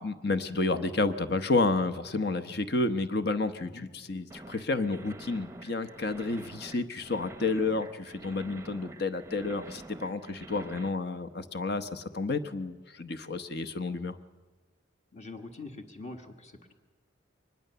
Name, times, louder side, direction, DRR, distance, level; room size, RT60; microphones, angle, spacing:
voice 1, 0.0-14.2, left 3 dB, 55° left, 10 dB, 1.0 m, -30 dB
sound 1, 4.3-10.9, right 2 dB, 15° right, 0.7 m, -47 dB
voice 2, 15.1-16.7, left 3 dB, 35° left, 5 dB, 1.6 m, -44 dB
23.5 x 20.5 x 6.9 m, 1.3 s
head